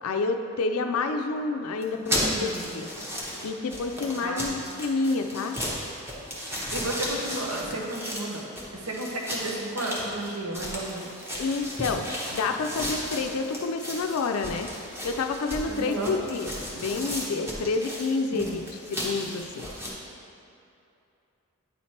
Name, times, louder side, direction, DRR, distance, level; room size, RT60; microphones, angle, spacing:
voice 1, 0.0-2.9 3.4-5.6 11.4-12.0 12.3-14.7 15.0-18.6 18.9-19.7, left 4 dB, 80° left, 5 dB, 0.4 m, -29 dB
sound 1, 1.8-19.9, equal, 10° right, 0.9 m, -34 dB
voice 2, 1.9-2.7 4.2-4.7 6.5-11.2 15.7-16.1 18.3-18.6, right 2 dB, 90° right, -1 dB, 0.9 m, -33 dB
9.0 x 3.2 x 4.3 m, 2.8 s
head